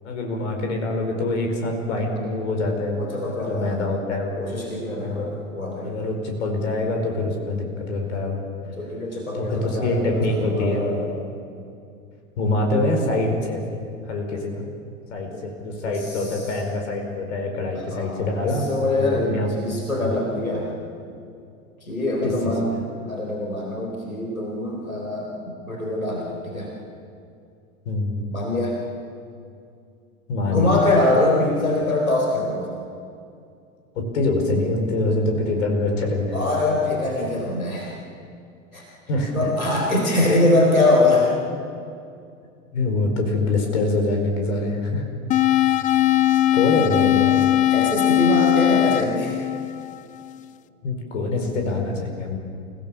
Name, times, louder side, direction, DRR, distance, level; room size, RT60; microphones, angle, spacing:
voice 1, 0.0-3.0 3.4-4.4 5.0-5.4 5.8-8.4 9.3-10.8 12.4-14.7 15.1-19.5 20.0-20.1 22.2-22.5 27.8-28.2 30.3-30.8 33.9-36.6 39.1-39.5 40.2-40.3 42.7-45.0 45.5-46.0 46.5-47.5 50.8-52.4, left 2 dB, 60° left, 3 dB, 5.2 m, -25 dB
voice 2, 2.9-3.8 4.4-6.0 8.7-11.2 15.3-15.4 15.8-16.4 17.9-20.7 21.1-21.2 21.8-22.7 23.1-26.7 28.3-28.8 30.5-32.7 36.3-38.0 38.7-38.9 39.3-41.3 47.7-49.4, left 2 dB, 85° left, -1 dB, 4.4 m, -23 dB
sound 1, 45.3-50.3, left 13 dB, 20° left, 0.5 m, -20 dB
29.0 x 17.5 x 7.2 m, 2.4 s
figure-of-eight pair, 85°, 41 cm